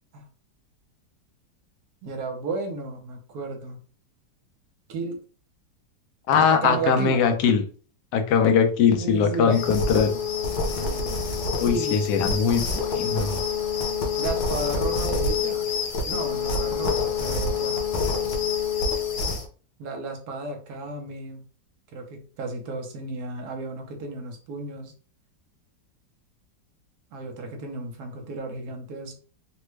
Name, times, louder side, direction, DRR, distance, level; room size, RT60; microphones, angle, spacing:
voice 1, 2.0-3.8 4.9-5.2 6.5-7.2 9.0-9.9 10.8-11.3 11.6-12.1 14.2-15.7 16.0-17.8 19.8-21.5 21.9-24.9 27.1-29.2, right 3 dB, 65° right, 3 dB, 1.2 m, -33 dB
voice 2, 6.3-7.7 8.1-10.2 11.6-13.4, left 6 dB, 70° left, 5 dB, 1.1 m, -21 dB
sound 1, 9.5-19.5, left 5 dB, 85° left, 1.3 m, -26 dB
3.3 x 2.2 x 3.1 m, 0.39 s
omnidirectional pair, 1.9 m